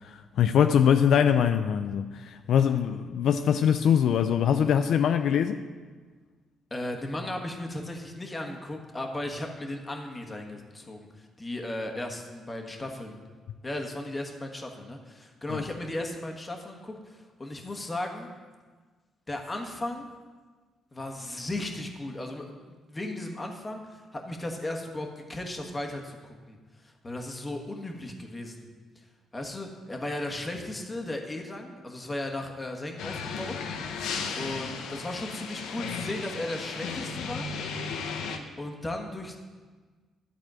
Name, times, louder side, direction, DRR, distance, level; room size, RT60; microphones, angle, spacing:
voice 1, 0.0-5.6 15.5-15.6, left 8 dB, 70° left, 8 dB, 0.4 m, -23 dB
voice 2, 6.7-13.2 13.6-18.3 19.3-20.1 20.9-26.6 26.8-28.7 29.3-33.5 34.4-37.5 38.6-39.4, left 1 dB, 20° left, 2 dB, 1.4 m, -36 dB
sound 1, 33.0-38.4, left 5 dB, 85° left, 0.8 m, -35 dB
12.0 x 4.3 x 7.5 m, 1.4 s
cardioid pair, 90°, 0 cm